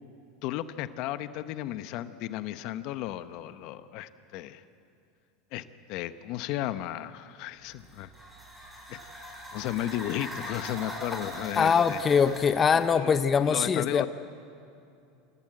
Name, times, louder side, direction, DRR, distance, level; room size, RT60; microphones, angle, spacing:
voice 1, 0.4-4.6 5.5-8.1 8.9-9.0 9.5-12.0 12.7-13.1 13.5-14.1, left 13 dB, 60° left, 12 dB, 0.9 m, -34 dB
sound 1, 7.7-13.0, equal, 5° right, 6.7 m, -41 dB
voice 2, 11.6-14.1, left 6 dB, 30° left, 11 dB, 0.7 m, -23 dB
27.5 x 16.5 x 7.9 m, 2.6 s
hypercardioid pair, 100°, 0 cm